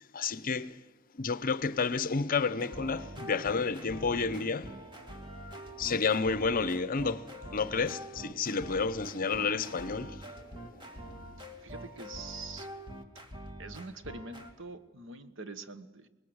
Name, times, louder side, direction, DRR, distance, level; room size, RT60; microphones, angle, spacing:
voice 1, 0.1-0.8 1.1-4.8 5.8-10.3, left 4 dB, 45° left, 0.7 m, -30 dB
sound 1, 1.6-11.3, left 1 dB, 55° right, 3.0 m, -57 dB
sound 2, 2.6-14.5, equal, 25° right, 2.6 m, -45 dB
voice 2, 11.6-12.7 13.6-16.1, right 3 dB, 70° right, 1.3 m, -44 dB
25.0 x 20.5 x 8.0 m
head